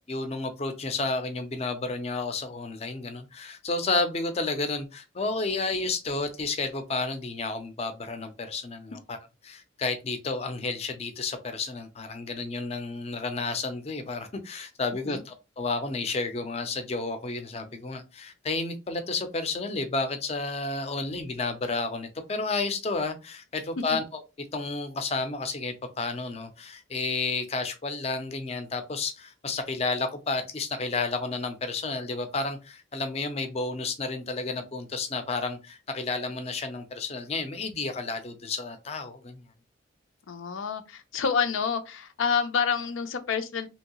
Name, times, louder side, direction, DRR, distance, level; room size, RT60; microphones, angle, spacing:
voice 1, 0.1-9.2 9.4-24.0 24.5-39.4, left 3 dB, 30° left, 0.5 m, -31 dB
voice 2, 40.3-43.7, left 6 dB, 85° left, 0.5 m, -28 dB
3.0 x 2.7 x 2.9 m
head